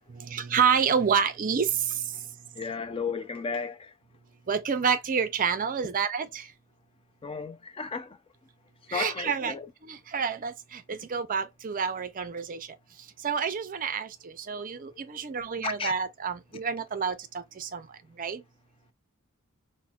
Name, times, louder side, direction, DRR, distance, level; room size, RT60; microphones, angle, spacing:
voice 1, 0.1-2.0 4.5-6.5 8.9-9.6 9.8-12.7 13.2-17.9 18.2-18.4, right 6 dB, 40° right, 0.5 m, -28 dB
voice 2, 2.6-3.9 7.2-8.2 8.9-9.7 15.6-15.9, left 5 dB, 25° left, 0.4 m, -33 dB
5.7 x 2.1 x 2.3 m
head